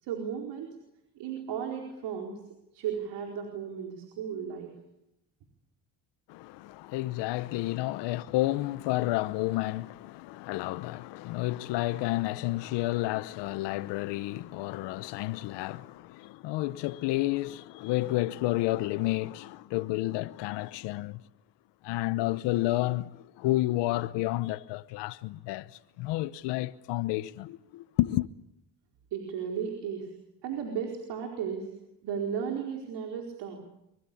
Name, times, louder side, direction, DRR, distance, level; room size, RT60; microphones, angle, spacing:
voice 1, 0.0-0.7 1.2-2.3 2.7-4.7 29.1-30.1 30.4-31.7 32.0-33.6, right 7 dB, 80° right, 4.6 m, -34 dB
voice 2, 6.3-21.2 21.8-28.3, left 17 dB, 85° left, 1.0 m, -30 dB
24.5 x 23.5 x 8.6 m
cardioid pair, 85°, 41 cm